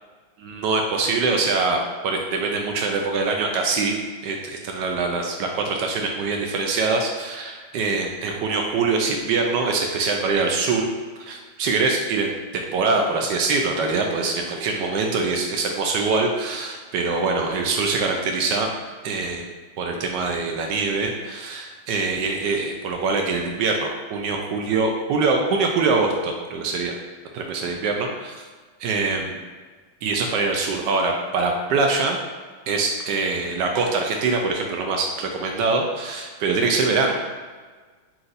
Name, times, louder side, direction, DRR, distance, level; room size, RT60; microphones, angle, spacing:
voice 1, 0.4-4.0 4.2-10.9 11.2-18.7 19.0-19.5 19.8-27.0 27.3-28.4 28.8-29.4 30.0-32.2 32.7-37.1, right 3 dB, 80° right, 2 dB, 0.9 m, -24 dB
4.4 x 2.6 x 3.9 m, 1.4 s
omnidirectional pair, 2.4 m